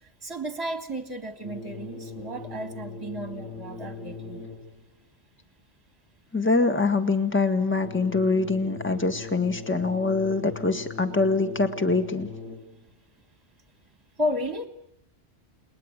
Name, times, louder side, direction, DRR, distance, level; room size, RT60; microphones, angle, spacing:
voice 1, 0.2-4.4 14.2-14.7, equal, 20° right, 8 dB, 1.9 m, -33 dB
sound 1, 1.4-4.9 7.8-12.9, left 4 dB, 85° left, 5.5 m, -40 dB
voice 2, 6.3-12.3, left 3 dB, 10° left, 8 dB, 1.6 m, -24 dB
30.0 x 20.5 x 9.0 m, 0.78 s
omnidirectional pair, 1.2 m